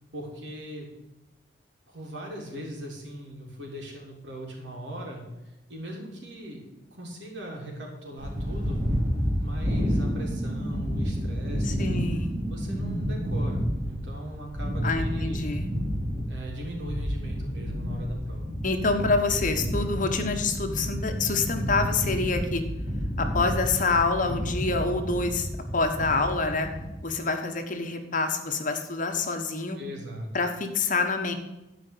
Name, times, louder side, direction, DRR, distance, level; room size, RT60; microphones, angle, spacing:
voice 1, 0.1-0.9 1.9-5.2 5.7-6.6 6.9-8.8 9.4-12.0 12.5-15.6 16.3-18.5 29.8-30.3, equal, 85° right, -1 dB, 3.5 m, -39 dB
sound 1, 8.2-26.9, equal, 50° right, 2.8 m, -30 dB
voice 2, 11.6-12.4 14.8-15.7 18.6-22.6 23.2-26.7 27.0-29.8 30.3-31.3, left 3 dB, 50° left, 6 dB, 1.3 m, -27 dB
12.0 x 5.2 x 8.5 m, 0.99 s
head